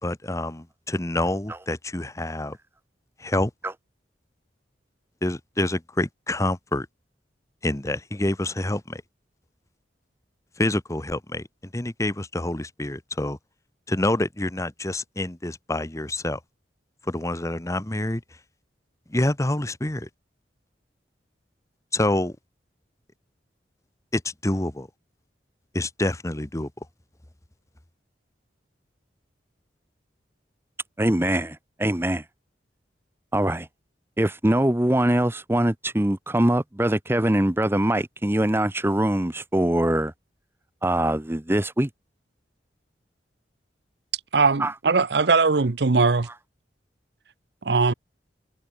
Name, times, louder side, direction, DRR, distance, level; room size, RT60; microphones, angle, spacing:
voice 1, 0.0-2.6 3.2-3.5 5.2-6.9 7.6-9.0 10.6-13.4 13.9-16.4 17.0-18.2 19.1-20.1 21.9-22.4 24.1-24.9 25.7-26.7, left 1 dB, 15° left, 1.1 m, -27 dB
voice 2, 31.0-32.2 33.3-33.7 34.2-40.1 40.8-41.9 44.6-44.7, right 1 dB, 15° right, 0.9 m, -23 dB
voice 3, 44.3-46.3 47.6-47.9, right 4 dB, 65° right, 0.8 m, -20 dB
head